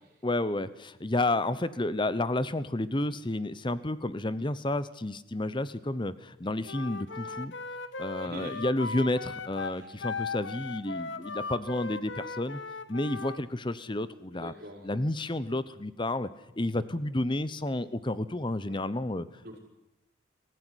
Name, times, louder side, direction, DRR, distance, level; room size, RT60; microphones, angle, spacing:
voice 1, 0.2-7.5 8.0-12.6 12.9-14.5 14.8-16.3 16.6-19.3, left 1 dB, 25° left, 16 dB, 0.9 m, -31 dB
Wind instrument woodwind instrument, 6.6-13.4, left 4 dB, 65° left, 1.4 m, -38 dB
voice 2, 8.2-8.6 9.6-9.8 14.3-14.9 18.7-18.8 19.4-19.6, right 1 dB, 50° right, 0 dB, 5.7 m, -44 dB
23.5 x 15.5 x 10.0 m, 0.96 s
head